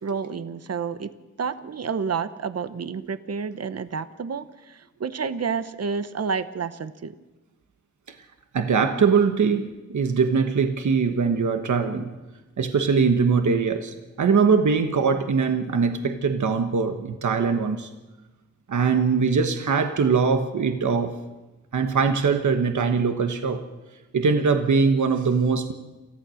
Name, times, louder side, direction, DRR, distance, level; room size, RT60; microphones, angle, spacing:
voice 1, 0.0-1.1 1.4-7.1, right 5 dB, 55° right, 12 dB, 1.0 m, -30 dB
voice 2, 8.5-12.1 12.6-17.9 18.7-21.1 21.7-23.6 24.1-25.7, right 5 dB, 75° right, 6 dB, 1.3 m, -22 dB
27.5 x 14.5 x 6.4 m, 1.1 s
cardioid pair, 70°, 30 cm